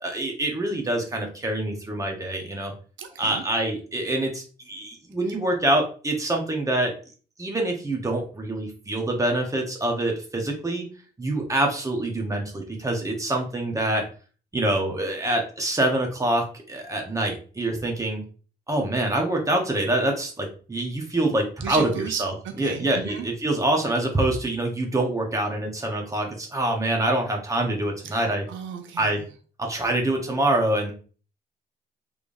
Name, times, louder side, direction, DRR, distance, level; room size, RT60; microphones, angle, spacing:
voice 1, 0.0-2.7 3.2-6.9 7.4-10.9 11.2-14.0 14.5-18.2 18.7-21.9 22.2-28.4 29.0-29.2 29.6-30.9, right 1 dB, 15° right, 1 dB, 1.1 m, -25 dB
voice 2, 3.0-3.4 21.6-23.3 28.0-29.3, right 8 dB, 75° right, 5 dB, 0.6 m, -35 dB
3.5 x 3.3 x 2.6 m, 0.39 s
cardioid pair, 90°, 20 cm